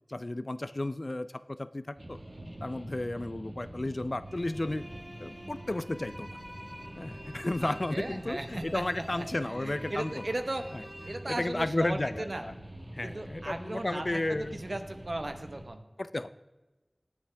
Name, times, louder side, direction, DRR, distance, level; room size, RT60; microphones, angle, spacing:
voice 1, 0.1-2.2 2.6-4.8 5.2-6.4 7.0-10.2 10.7-10.8 11.1-12.5 12.9-14.6 16.0-16.3, left 2 dB, 60° left, 14 dB, 0.5 m, -33 dB
sound 1, 2.0-15.7, right 1 dB, 55° right, 1.6 m, -46 dB
sound 2, 4.3-12.0, equal, ahead, 2.4 m, -48 dB
voice 2, 7.6-12.5 13.0-15.9, right 1 dB, 80° right, 7 dB, 1.1 m, -37 dB
19.0 x 7.2 x 3.4 m, 1.1 s
wide cardioid pair, 40°, 0 cm